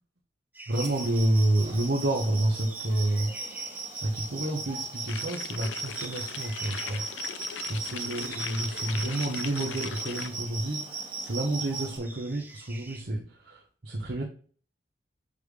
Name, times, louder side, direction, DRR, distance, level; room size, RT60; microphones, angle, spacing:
sound 1, 0.5-13.0, right 2 dB, 10° right, 0.7 m, -49 dB
sound 2, 0.7-12.0, right 3 dB, 25° right, 1.8 m, -38 dB
voice 1, 0.7-3.3 4.0-7.0 7.6-14.2, right 1 dB, 55° right, -2 dB, 0.9 m, -29 dB
sound 3, 5.1-10.3, left 7 dB, 75° left, 0.5 m, -40 dB
6.9 x 4.9 x 3.3 m, 0.43 s
head